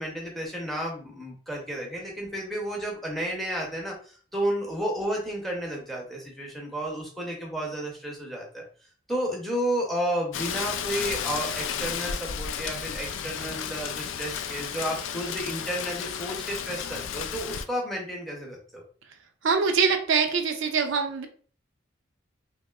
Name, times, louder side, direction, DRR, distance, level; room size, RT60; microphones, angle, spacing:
voice 1, 0.0-8.6 9.1-18.8, right 1 dB, ahead, -1 dB, 0.6 m, -32 dB
Rain, 10.3-17.6, left 8 dB, 70° left, 0.3 m, -33 dB
voice 2, 19.4-21.3, right 5 dB, 70° right, 6 dB, 0.4 m, -24 dB
2.9 x 2.9 x 2.3 m, 0.43 s
head